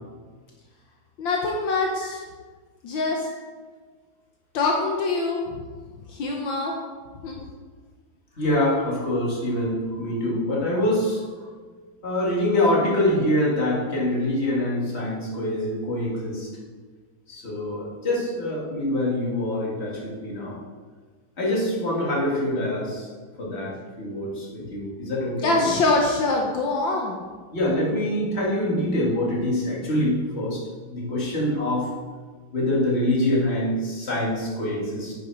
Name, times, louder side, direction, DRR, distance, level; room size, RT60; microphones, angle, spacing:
voice 1, 1.2-2.2 2.8-3.3 4.5-5.6 6.1-6.8 7.2-7.4 25.4-27.2, left 3 dB, 75° left, 0 dB, 1.6 m, -24 dB
voice 2, 8.4-11.2 12.0-16.5 17.3-20.6 21.4-23.1 23.4-25.7 27.5-30.6 30.9-31.9 32.5-35.1, left 1 dB, 30° left, -5 dB, 2.4 m, -25 dB
9.7 x 6.8 x 4.8 m, 1.5 s
omnidirectional pair, 2.2 m